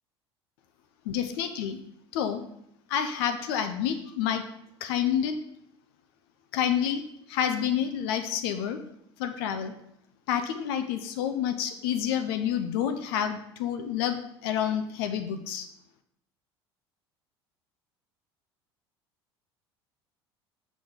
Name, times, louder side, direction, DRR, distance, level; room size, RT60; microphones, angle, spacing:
voice 1, 1.1-1.8 2.1-2.4 2.9-4.4 4.8-5.4 6.5-7.0 7.3-8.8 9.2-9.7 10.3-15.7, left 9 dB, 60° left, 8 dB, 0.6 m, -28 dB
6.0 x 5.9 x 3.7 m, 0.75 s
figure-of-eight pair, 70°, 14 cm